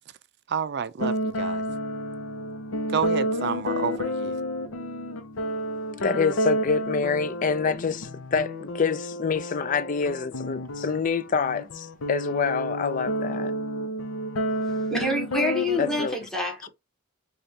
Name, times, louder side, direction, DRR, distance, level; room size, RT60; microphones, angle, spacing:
voice 1, 0.5-1.6 2.9-4.4, right 6 dB, 50° right, 0.4 m, -29 dB
sound 1, 1.0-16.1, equal, 80° left, 0.7 m, -30 dB
voice 2, 6.0-13.5 15.8-16.2, left 5 dB, 40° left, 0.3 m, -26 dB
voice 3, 14.9-16.7, left 1 dB, ahead, 1.1 m, -27 dB
5.1 x 2.4 x 2.8 m
head